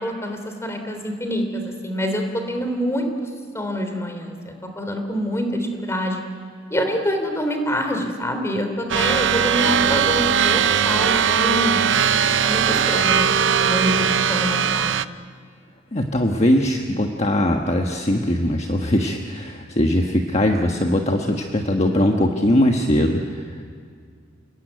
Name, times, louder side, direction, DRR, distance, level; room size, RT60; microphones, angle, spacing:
voice 1, 0.0-3.1 3.5-6.2 6.7-11.8 12.4-15.0, equal, 15° left, 5 dB, 3.2 m, -26 dB
sound 1, 8.9-15.0, right 7 dB, 65° right, 0.7 m, -19 dB
voice 2, 15.9-23.6, left 1 dB, 35° left, 2 dB, 1.3 m, -20 dB
29.5 x 19.0 x 9.4 m, 2.1 s
head